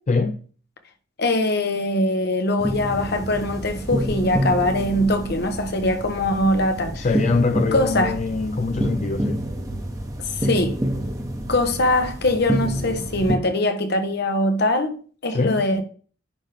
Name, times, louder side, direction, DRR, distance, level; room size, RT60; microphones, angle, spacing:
voice 1, 0.1-0.4 6.9-9.5 15.3-15.6, left 3 dB, 40° left, 0.4 m, -23 dB
voice 2, 1.2-7.1 7.7-8.2 10.4-10.8 11.5-15.0 15.2-15.8, left 1 dB, 55° left, 1.2 m, -22 dB
sound 1, 2.6-13.4, equal, 20° right, 1.1 m, -28 dB
10.5 x 3.6 x 3.5 m
head